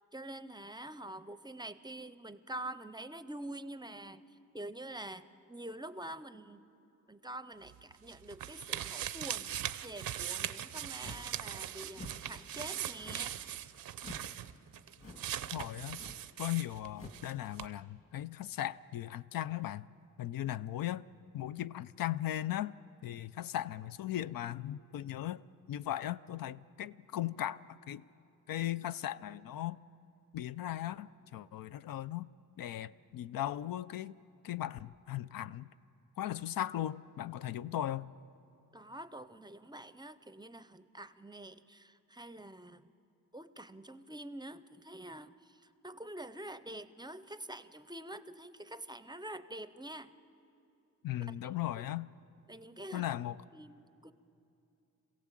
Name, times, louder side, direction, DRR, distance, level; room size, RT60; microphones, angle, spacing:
voice 1, 0.1-6.6 7.1-9.5 9.8-13.4 38.7-42.9 43.3-50.1 51.2-51.9 52.5-53.1 53.5-54.1, right 1 dB, 15° right, 0.5 m, -46 dB
sound 1, 7.7-17.3 17.6-17.7, right 10 dB, 90° right, 0.7 m, -40 dB
sound 2, 11.0-11.4 11.9-12.3 13.0-13.4 14.0-14.3 15.0-15.4 15.9-16.3 16.9-17.3, left 2 dB, 40° left, 2.0 m, -49 dB
voice 2, 15.5-16.0 16.4-19.9 20.2-21.1 21.3-22.7 23.0-25.4 25.7-28.0 28.5-29.8 30.3-32.3 32.6-34.1 34.4-35.7 36.2-38.1 51.0-52.1 52.9-53.4, left 13 dB, 90° left, 0.5 m, -37 dB
27.0 x 16.5 x 7.5 m
wide cardioid pair, 125°, 33 cm